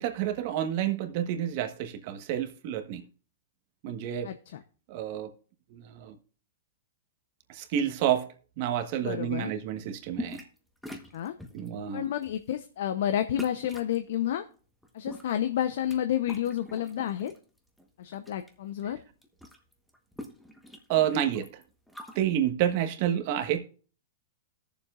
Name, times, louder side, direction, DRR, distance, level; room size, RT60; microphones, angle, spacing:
voice 1, 0.0-3.1 3.8-4.3 4.9-5.3 5.7-6.1 7.5-8.3 8.6-10.4 11.5-12.0 20.9-21.5 22.1-23.6, right 10 dB, 50° right, 1.4 m, -29 dB
voice 2, 4.2-4.6 9.0-9.5 11.1-11.3 11.9-14.4 14.9-17.3 18.0-19.0, left 10 dB, 70° left, 0.7 m, -30 dB
sound 1, 10.1-10.6 10.8-11.7 12.2-12.4 13.4-14.0 14.8-17.4 17.8-18.5 18.8-18.9 19.1-22.2, left 1 dB, ahead, 1.2 m, -43 dB
19.0 x 7.1 x 2.5 m
hypercardioid pair, 140°, 0 cm